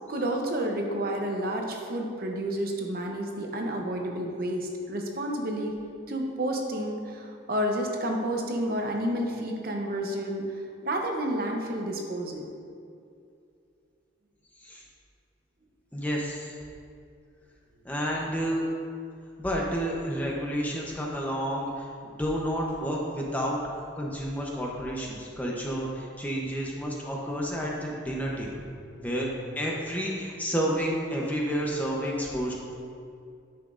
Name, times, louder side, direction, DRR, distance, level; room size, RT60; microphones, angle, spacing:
voice 1, 0.1-5.8 6.1-10.4 10.8-12.5, right 1 dB, 50° right, 2 dB, 0.7 m, -30 dB
voice 2, 15.9-16.5 17.8-18.6 19.4-23.6 23.9-28.6 29.0-29.3 29.6-32.5, equal, 10° left, -3 dB, 0.7 m, -30 dB
9.4 x 5.9 x 2.5 m, 2.4 s
head